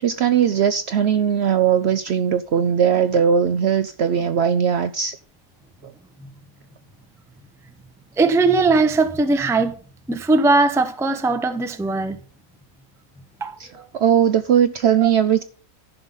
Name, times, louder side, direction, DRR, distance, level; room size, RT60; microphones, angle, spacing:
voice 1, 0.0-5.2 5.8-5.9 13.6-13.7 13.9-15.4, right 8 dB, 65° right, 0.7 m, -19 dB
voice 2, 8.2-9.8 10.1-12.2 13.4-13.6, right 3 dB, 5° right, 0.5 m, -19 dB
11.0 x 5.7 x 5.5 m
omnidirectional pair, 1.5 m